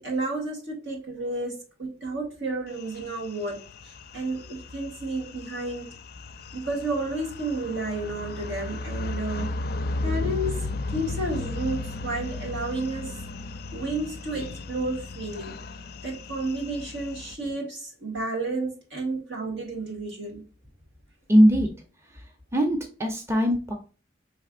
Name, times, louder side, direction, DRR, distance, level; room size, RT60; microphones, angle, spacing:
voice 1, 0.0-3.6 3.8-5.9 6.5-9.5 10.0-13.2 13.7-15.6 16.0-20.4, right 2 dB, 75° right, -1 dB, 2.2 m, -31 dB
sound 1, 2.8-17.3, left 2 dB, 55° left, 0.4 m, -35 dB
voice 2, 21.3-21.7 22.5-23.7, equal, 15° right, 3 dB, 0.6 m, -20 dB
5.5 x 3.3 x 2.5 m, 0.37 s
head